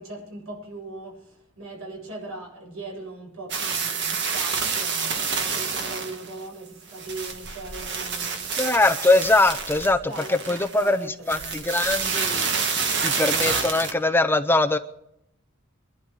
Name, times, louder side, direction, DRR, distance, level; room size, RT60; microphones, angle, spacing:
voice 1, 0.0-8.6 9.8-11.8, right 2 dB, 80° right, -1 dB, 7.6 m, -39 dB
sound 1, 3.5-6.3 6.9-10.9 11.3-13.9, right 5 dB, 55° right, 1.7 m, -28 dB
voice 2, 8.6-10.0 10.3-11.0 11.3-12.5 13.0-14.8, left 2 dB, 10° left, 8 dB, 0.5 m, -21 dB
23.0 x 12.0 x 3.9 m, 0.79 s
head